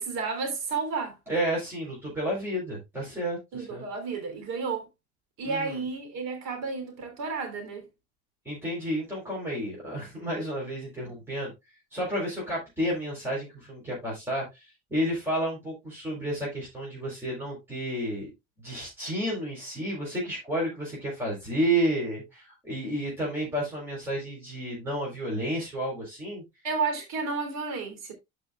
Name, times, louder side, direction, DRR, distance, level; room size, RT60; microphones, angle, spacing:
voice 1, 0.0-1.2 3.5-4.9 5.4-7.9 26.6-28.1, right 4 dB, 60° right, 3.3 m, -32 dB
voice 2, 1.3-3.8 5.4-5.8 8.4-11.5 11.9-18.3 18.6-26.4, right 1 dB, 10° right, 4.0 m, -31 dB
12.5 x 5.4 x 2.4 m
cardioid pair, 150°, 30 cm